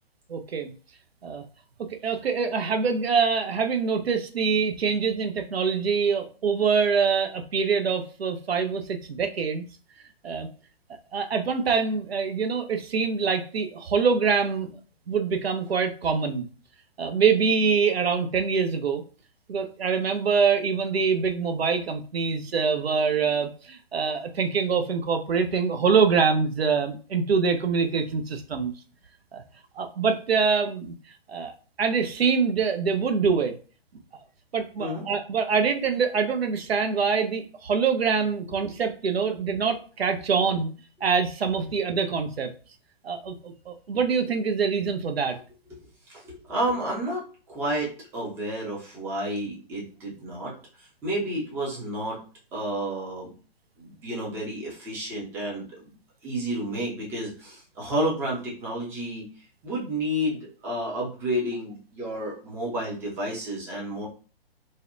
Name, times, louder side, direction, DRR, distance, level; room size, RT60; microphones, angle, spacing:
voice 1, 0.3-0.7 1.2-1.4 1.8-9.6 10.2-10.5 11.1-14.7 15.1-16.5 17.0-19.0 19.5-28.8 29.3-29.4 29.8-30.9 31.3-33.6 34.5-40.7 41.0-42.5 43.0-45.4, right 5 dB, 85° right, 6 dB, 0.5 m, -25 dB
voice 2, 46.1-52.2 52.5-53.3 53.8-55.9 56.2-59.3 59.6-64.1, right 1 dB, 10° right, -4 dB, 0.4 m, -31 dB
2.6 x 2.1 x 2.5 m, 0.37 s
figure-of-eight pair, 125°, 30 cm